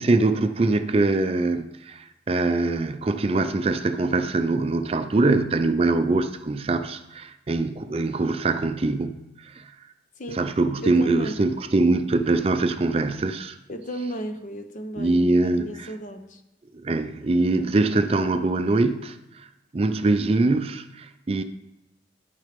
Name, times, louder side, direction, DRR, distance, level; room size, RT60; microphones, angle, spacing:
voice 1, 0.0-9.2 9.6-9.7 10.3-13.6 15.0-15.9 16.8-19.5 19.7-21.4, right 2 dB, 35° right, 9 dB, 0.4 m, -23 dB
voice 2, 10.8-11.4 13.7-16.4, equal, 45° left, 7 dB, 0.8 m, -34 dB
10.5 x 6.2 x 5.1 m, 0.95 s
head